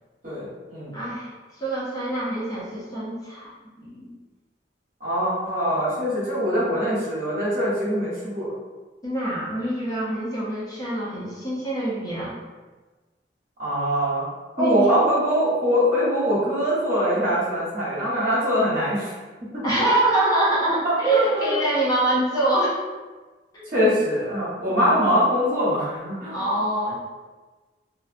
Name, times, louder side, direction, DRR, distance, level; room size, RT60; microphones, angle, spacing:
voice 1, 0.2-0.9 5.0-8.6 13.6-14.2 14.6-19.1 19.5-19.6 20.8-21.5 23.7-26.4, equal, 50° right, -8 dB, 1.0 m, -23 dB
voice 2, 0.9-1.3 1.5-3.5 3.8-4.1 9.0-12.4 14.6-14.9 19.6-22.8 23.5-23.7 24.7-24.8 26.3-27.0, right 1 dB, 20° left, -6 dB, 0.5 m, -24 dB
2.5 x 2.1 x 2.4 m, 1.3 s
head